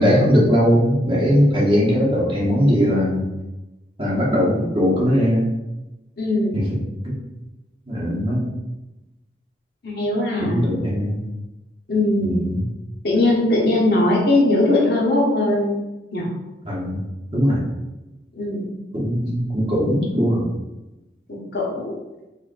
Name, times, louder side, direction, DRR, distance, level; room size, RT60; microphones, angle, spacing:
voice 1, 0.0-3.2 4.0-5.5 6.5-6.7 7.0-7.2 7.9-8.5 10.4-11.2 12.2-12.6 16.6-17.0 17.3-17.6 18.9-20.5, equal, 30° right, -5 dB, 1.0 m, -19 dB
voice 2, 6.2-6.6 9.8-10.6 11.9-12.5 13.0-15.7 16.1-16.3 18.4-18.7 21.3-21.9, left 1 dB, 60° left, -3 dB, 1.0 m, -20 dB
5.0 x 2.4 x 2.5 m, 1.0 s
head